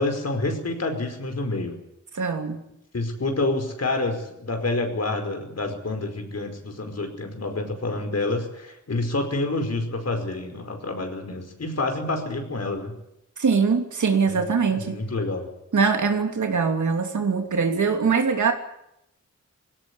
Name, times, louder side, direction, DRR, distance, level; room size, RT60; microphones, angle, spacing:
voice 1, 0.0-1.8 2.9-12.9 14.3-15.5, left 2 dB, 60° left, 5 dB, 5.0 m, -28 dB
voice 2, 2.1-2.6 13.4-14.9 15.7-18.5, right 5 dB, 80° right, 5 dB, 3.0 m, -22 dB
20.0 x 17.5 x 9.9 m, 0.81 s
wide cardioid pair, 80°, 29 cm